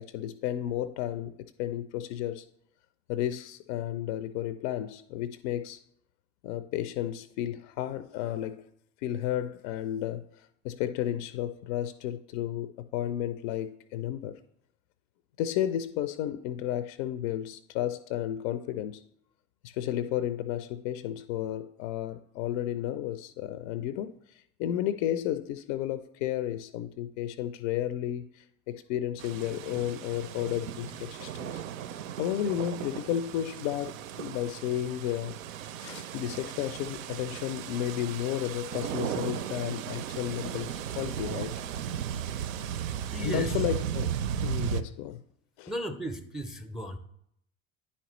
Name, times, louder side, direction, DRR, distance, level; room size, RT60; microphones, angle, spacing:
voice 1, 0.0-2.4 3.1-5.8 6.4-8.7 9.0-14.4 15.4-19.0 19.6-31.6 32.2-35.4 35.8-41.5 43.2-45.2 45.6-45.7, left 11 dB, 60° left, 0.5 m, -33 dB
sound 1, 29.2-44.8, right 9 dB, 80° right, 0.5 m, -36 dB
voice 2, 42.6-43.7 45.7-47.0, right 1 dB, ahead, 0.5 m, -36 dB
9.8 x 4.2 x 3.0 m
hypercardioid pair, 70°, 40 cm